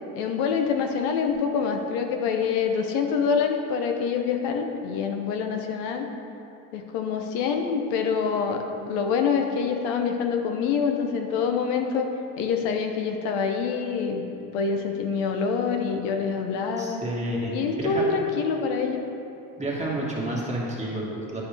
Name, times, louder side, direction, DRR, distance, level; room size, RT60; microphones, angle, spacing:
voice 1, 0.1-6.1 6.7-12.1 12.4-14.2 14.5-17.0 17.5-19.0, left 6 dB, 85° left, 4 dB, 0.8 m, -26 dB
voice 2, 16.8-18.0 19.6-21.4, right 1 dB, 15° right, -4 dB, 1.8 m, -30 dB
10.0 x 5.2 x 3.4 m, 2.8 s
supercardioid pair, 80°, 39 cm